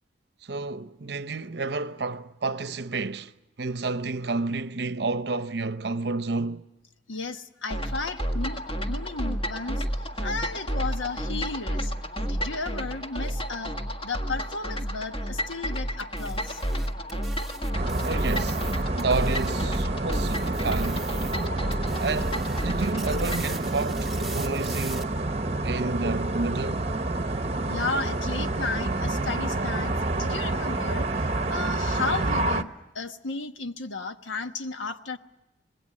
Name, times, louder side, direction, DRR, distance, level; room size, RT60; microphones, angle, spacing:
voice 1, 0.4-3.3 3.6-6.7 18.0-18.6 19.0-21.1 22.0-25.2 25.6-26.9, right 3 dB, 60° right, 0.7 m, -30 dB
voice 2, 7.1-11.9 12.2-13.7 14.0-16.6 27.5-35.2, left 3 dB, 85° left, 1.1 m, -34 dB
sound 1, 7.7-23.6, equal, 30° left, 1.7 m, -31 dB
sound 2, 16.0-19.8 20.1-21.5 21.7-25.0, right 3 dB, ahead, 1.2 m, -42 dB
sound 3, 17.7-32.6, right 2 dB, 35° right, 0.9 m, -28 dB
26.5 x 20.5 x 7.4 m
head